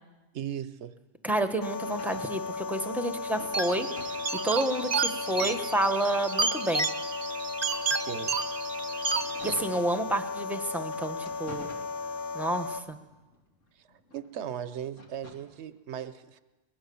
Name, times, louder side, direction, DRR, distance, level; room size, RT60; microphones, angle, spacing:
voice 1, 0.3-0.9 8.1-8.3 14.1-16.4, right 9 dB, 70° right, 13 dB, 1.1 m, -37 dB
voice 2, 1.2-4.2 4.4-6.9 9.4-11.7 12.3-13.0, right 1 dB, ahead, 8 dB, 1.2 m, -30 dB
sound 1, 1.6-12.8, left 4 dB, 50° left, 1.0 m, -35 dB
sound 2, 1.9-4.4 4.7-6.4 6.9-10.4 10.8-12.5 12.9-15.6, left 1 dB, 85° left, 3.1 m, -50 dB
sound 3, 3.5-9.5, right 4 dB, 35° right, 0.9 m, -31 dB
22.0 x 19.5 x 7.0 m, 1.1 s
omnidirectional pair, 1.2 m